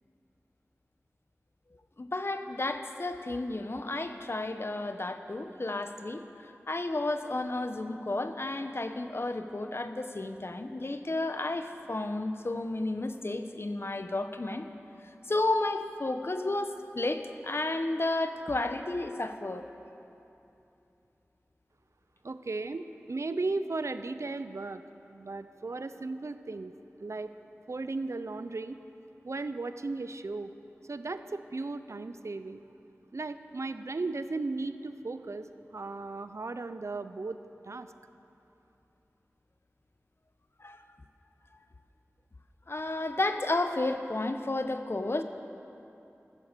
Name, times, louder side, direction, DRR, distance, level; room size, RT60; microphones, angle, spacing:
voice 1, 2.0-14.7 15.3-19.7 40.6-40.8 42.7-45.2, left 2 dB, 50° left, 8 dB, 0.9 m, -32 dB
voice 2, 22.2-24.8 25.1-26.7 27.0-27.3 27.7-28.8 29.2-30.5 30.9-32.6 33.1-35.5 35.7-37.4 37.6-37.9, right 3 dB, 70° right, 10 dB, 0.6 m, -36 dB
16.0 x 13.5 x 6.8 m, 2.9 s
wide cardioid pair, 55°, 5 cm